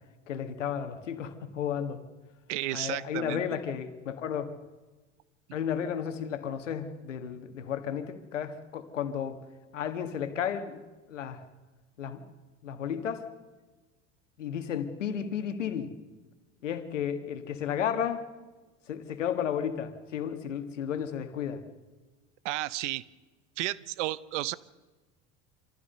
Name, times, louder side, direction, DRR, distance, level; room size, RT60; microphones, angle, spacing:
voice 1, 0.3-2.0 2.7-4.5 5.5-9.4 9.7-10.8 11.1-11.4 12.0-12.3 12.6-13.3 14.4-15.9 16.6-18.3 18.9-21.6, left 8 dB, 90° left, 9 dB, 1.8 m, -33 dB
voice 2, 2.5-3.4 22.4-23.0 23.6-24.5, right 17 dB, 75° right, 20 dB, 0.8 m, -32 dB
26.0 x 15.0 x 6.8 m, 1.2 s
hypercardioid pair, 75°, 36 cm